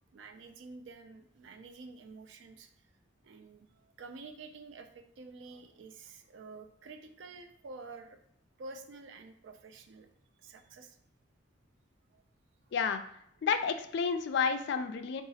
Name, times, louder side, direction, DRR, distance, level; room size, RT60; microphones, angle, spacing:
voice 1, 0.1-2.7 3.2-8.2 8.6-10.1 10.4-11.0 12.1-12.2, right 3 dB, 65° right, 6 dB, 0.4 m, -49 dB
voice 2, 12.7-13.0 13.4-15.2, left 6 dB, 60° left, 8 dB, 0.3 m, -30 dB
3.8 x 2.4 x 2.7 m, 0.71 s
head